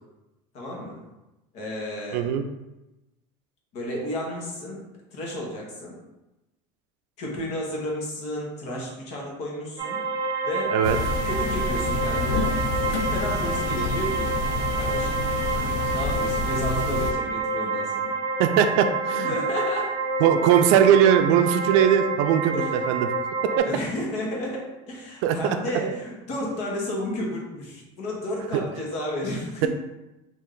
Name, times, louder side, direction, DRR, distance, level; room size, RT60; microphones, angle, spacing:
voice 1, 0.5-1.0 1.5-2.3 3.7-4.8 5.1-6.0 7.2-10.0 10.4-10.8 11.2-12.5 13.1-14.4 14.7-18.1 19.2-20.0 22.5-22.7 23.6-29.7, left 1 dB, 50° left, -2 dB, 1.0 m, -32 dB
voice 2, 2.1-2.4 10.7-11.0 18.4-19.3 20.2-23.1 25.2-25.4 29.6-29.7, right 9 dB, 85° right, 8 dB, 0.4 m, -20 dB
sound 1, 9.8-23.6, right 3 dB, 25° right, 0.5 m, -28 dB
sound 2, 10.8-17.1, left 4 dB, 80° left, 0.4 m, -29 dB
3.2 x 2.5 x 3.7 m, 1.0 s
cardioid pair, 175°, 15 cm